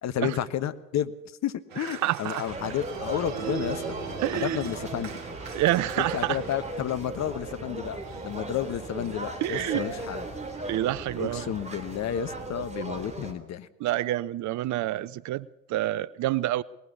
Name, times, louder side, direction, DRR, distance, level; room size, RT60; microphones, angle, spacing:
voice 1, 0.0-1.1 1.4-3.9 4.3-5.2 6.0-10.2 11.2-13.7, left 10 dB, 45° left, 1.3 m, -31 dB
Organ, 1.7-12.5, right 6 dB, 80° right, 4.0 m, -41 dB
voice 2, 2.0-2.4 4.2-4.6 5.5-6.4 9.4-9.8 10.7-11.5 13.8-16.6, right 15 dB, 50° right, 0.7 m, -27 dB
sound 1, 2.4-13.3, right 2 dB, 15° right, 3.3 m, -37 dB
20.5 x 18.5 x 7.2 m
hypercardioid pair, 65°, 38 cm